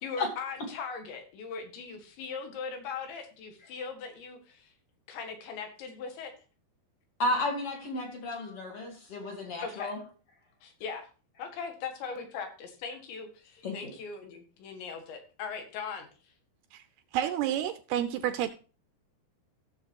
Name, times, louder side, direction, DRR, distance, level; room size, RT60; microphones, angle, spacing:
voice 1, 0.0-4.7 5.1-6.3 9.6-9.9 10.6-11.1 11.4-16.1, left 5 dB, 85° left, 4.1 m, -39 dB
voice 2, 7.2-10.0 13.6-13.9, left 1 dB, 45° left, 2.0 m, -32 dB
voice 3, 17.1-18.5, right 11 dB, 80° right, 2.4 m, -29 dB
16.0 x 7.0 x 2.9 m
omnidirectional pair, 5.0 m